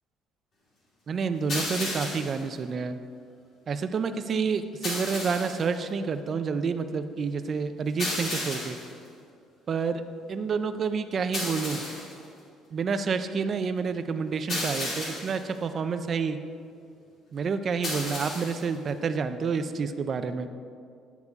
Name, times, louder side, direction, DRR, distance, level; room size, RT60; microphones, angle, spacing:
voice 1, 1.1-3.0 3.7-8.8 9.7-10.0 10.3-11.8 12.7-16.4 17.3-20.5, right 5 dB, 30° right, 9 dB, 0.4 m, -29 dB
sound 1, 1.5-2.4 4.8-5.7 8.0-8.9 11.3-12.2 14.5-15.4 17.8-18.7, left 1 dB, 45° left, 2.4 m, -33 dB
9.8 x 8.2 x 3.5 m, 2.3 s
cardioid pair, 170°, 0 cm